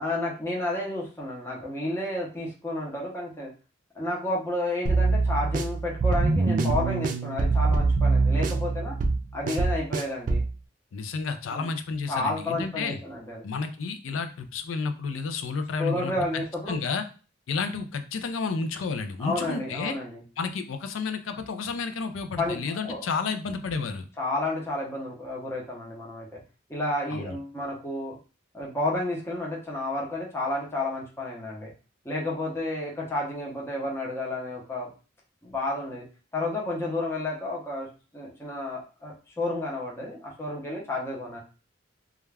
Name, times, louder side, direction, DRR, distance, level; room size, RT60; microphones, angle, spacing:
voice 1, 0.0-3.5 4.0-8.9 9.3-10.4 11.5-11.7 12.1-13.4 15.8-16.8 19.2-20.2 22.4-23.1 24.2-26.4 26.7-28.2 28.5-31.7 32.0-34.9 35.4-36.0 36.3-37.9 38.1-41.4, left 1 dB, 15° left, -3 dB, 0.6 m, -31 dB
sound 1, 4.9-10.5, right 3 dB, 45° right, 0.3 m, -24 dB
voice 2, 10.9-13.0 13.4-17.0 17.5-20.0 20.4-24.1 27.1-27.4, left 4 dB, 80° left, 8 dB, 0.4 m, -31 dB
2.3 x 2.2 x 3.2 m, 0.35 s
head